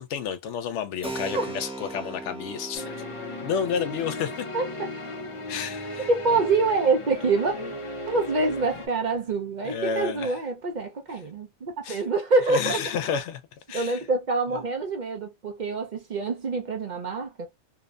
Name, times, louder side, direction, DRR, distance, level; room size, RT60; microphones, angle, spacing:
voice 1, 0.0-2.9 3.4-4.5 5.5-6.1 7.5-7.7 9.6-10.4 11.8-12.0 12.5-13.4 13.7-14.0, left 7 dB, 80° left, 0.9 m, -30 dB
Keyboard (musical), 1.0-9.4, right 2 dB, 5° right, 0.8 m, -41 dB
sound 1, 2.7-8.9, left 1 dB, 35° left, 0.6 m, -36 dB
voice 2, 6.1-7.5 8.1-12.8 13.7-17.5, right 3 dB, 50° right, 0.6 m, -26 dB
2.7 x 2.1 x 2.3 m
omnidirectional pair, 1.2 m